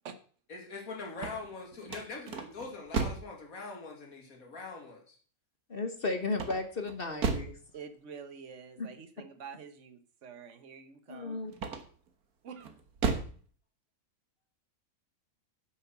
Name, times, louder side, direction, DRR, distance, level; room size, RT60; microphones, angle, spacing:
voice 1, 0.5-5.2, left 3 dB, 65° left, 1 dB, 3.0 m, -43 dB
sound 1, 1.1-3.4 6.3-7.6 11.5-12.1 12.6-13.4, right 5 dB, 80° right, 1.9 m, -34 dB
voice 2, 5.7-7.6 8.8-8.9 11.1-11.5, left 3 dB, 40° left, 7 dB, 1.3 m, -34 dB
voice 3, 7.7-11.6 12.4-12.7, right 6 dB, 55° right, 10 dB, 1.5 m, -47 dB
9.3 x 8.0 x 6.0 m, 0.43 s
omnidirectional pair, 1.6 m